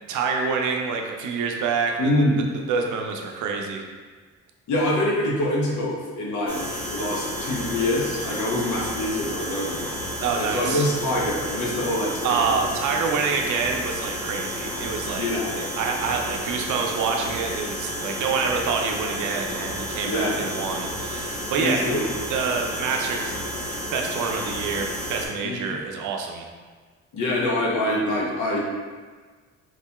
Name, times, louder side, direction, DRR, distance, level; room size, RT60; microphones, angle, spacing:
voice 1, 0.1-2.1 2.7-3.8 10.2-10.8 12.2-15.3 15.5-21.9 22.3-23.4 23.9-26.5, right 5 dB, 80° right, 2 dB, 0.5 m, -27 dB
voice 2, 2.0-2.5 4.7-6.6 6.9-9.9 10.3-12.6 15.2-15.5 20.0-20.4 21.5-22.0 25.4-25.7 27.1-28.6, left 1 dB, 70° left, -3 dB, 0.9 m, -25 dB
sound 1, 6.5-25.3, equal, 15° left, 1.1 m, -31 dB
3.9 x 2.8 x 2.3 m, 1.4 s
cardioid pair, 90°, 30 cm